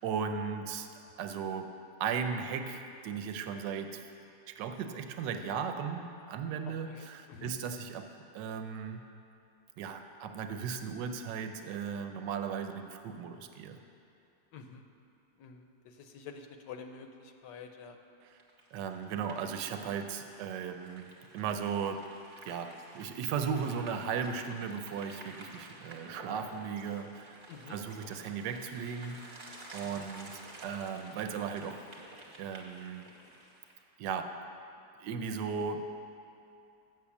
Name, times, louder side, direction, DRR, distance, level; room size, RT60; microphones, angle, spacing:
voice 1, 0.0-0.9 1.2-1.7 2.0-4.1 4.5-8.1 8.3-9.0 9.8-13.8 18.2-18.4 18.7-22.1 22.4-31.8 32.4-33.0 34.0-34.4 35.0-35.8, right 6 dB, 85° right, 7 dB, 1.3 m, -36 dB
voice 2, 6.7-7.5 14.5-14.8 15.4-18.0 27.5-27.8 29.9-30.1, left 6 dB, 85° left, 6 dB, 1.3 m, -48 dB
sound 1, 18.4-33.8, right 2 dB, 35° right, 1.0 m, -52 dB
7.8 x 6.2 x 7.0 m, 2.6 s
omnidirectional pair, 1.9 m